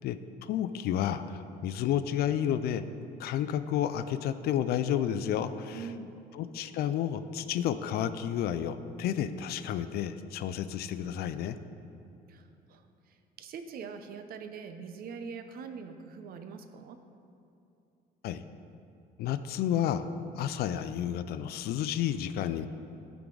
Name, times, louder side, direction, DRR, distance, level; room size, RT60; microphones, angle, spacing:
voice 1, 0.0-2.8 3.2-5.9 6.3-11.6 18.2-18.4 19.2-20.1 20.4-22.7, left 10 dB, 70° left, 12 dB, 0.4 m, -31 dB
voice 2, 5.7-6.1 12.3-17.0, right 5 dB, 60° right, 8 dB, 0.6 m, -43 dB
12.0 x 4.7 x 3.8 m, 2.8 s
cardioid pair, 110°, 17 cm